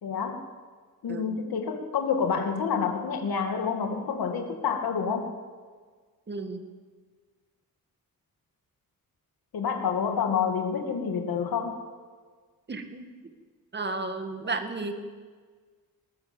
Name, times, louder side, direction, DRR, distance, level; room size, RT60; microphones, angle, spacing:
voice 1, 0.0-0.4 1.0-5.3 9.5-11.8, left 6 dB, 80° left, 4 dB, 2.2 m, -28 dB
voice 2, 1.1-1.4 6.3-6.7 12.7-13.3 13.7-14.9, right 3 dB, 30° right, 7 dB, 2.0 m, -33 dB
21.0 x 19.5 x 7.8 m, 1.5 s
wide cardioid pair, 165°, 36 cm